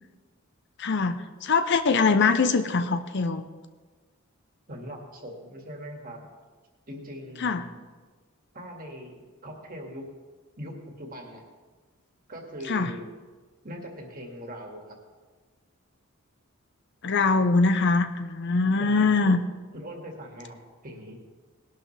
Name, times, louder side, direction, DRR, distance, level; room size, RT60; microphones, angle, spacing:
voice 1, 0.8-3.5 7.4-7.6 12.7-12.9 17.0-19.4, left 4 dB, 55° left, 10 dB, 0.6 m, -23 dB
voice 2, 4.7-6.2 6.9-7.7 8.5-10.0 10.6-11.4 12.3-13.0 13.6-15.0 18.8-19.3 19.7-20.6 20.8-21.2, equal, 40° right, 1 dB, 2.1 m, -41 dB
19.0 x 11.5 x 3.3 m, 1.4 s
head